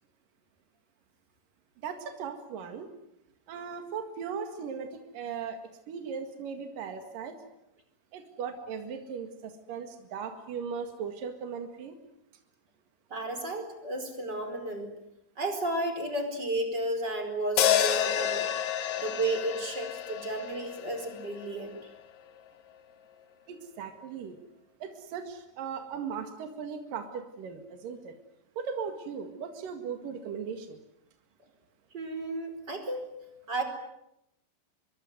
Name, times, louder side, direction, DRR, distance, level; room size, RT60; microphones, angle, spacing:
voice 1, 1.8-2.9 3.5-5.6 5.9-7.4 8.1-12.0 23.5-24.4 24.8-28.1 28.6-30.8, right 6 dB, 75° right, 6 dB, 3.6 m, -38 dB
voice 2, 13.1-14.9 15.4-18.5 19.0-21.7 31.9-33.1 33.5-33.6, right 1 dB, 30° right, 6 dB, 5.1 m, -33 dB
sound 1, 17.6-21.9, left 10 dB, 60° left, 2.4 m, -29 dB
26.0 x 22.0 x 9.5 m, 0.83 s
omnidirectional pair, 4.0 m